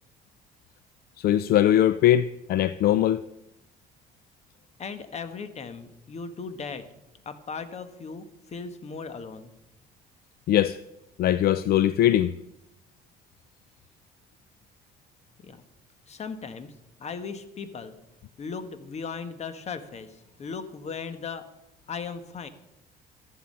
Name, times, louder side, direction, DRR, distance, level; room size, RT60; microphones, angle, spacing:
voice 1, 1.2-3.2 10.5-10.8 11.2-12.3, left 12 dB, 65° left, 0.5 m, -21 dB
voice 2, 4.8-6.8 7.2-9.5 15.4-15.6 16.1-16.7 17.0-18.0 18.4-21.4 21.9-22.5, left 5 dB, 40° left, 1.4 m, -37 dB
13.5 x 11.0 x 5.5 m
cardioid pair, 110°, 17 cm